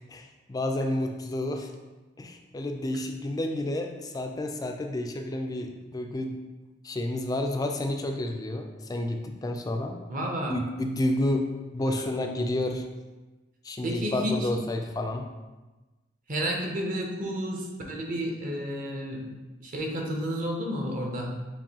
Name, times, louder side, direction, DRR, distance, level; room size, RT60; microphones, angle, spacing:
voice 1, 0.1-1.7 2.2-6.3 6.8-10.0 10.5-11.5 11.7-12.8 13.6-15.3, left 1 dB, 20° left, 4 dB, 0.3 m, -30 dB
voice 2, 10.1-10.6 11.9-12.1 13.8-14.5 16.3-19.3 19.6-21.4, equal, 45° right, 0 dB, 0.8 m, -31 dB
7.2 x 2.6 x 2.8 m, 1.2 s
head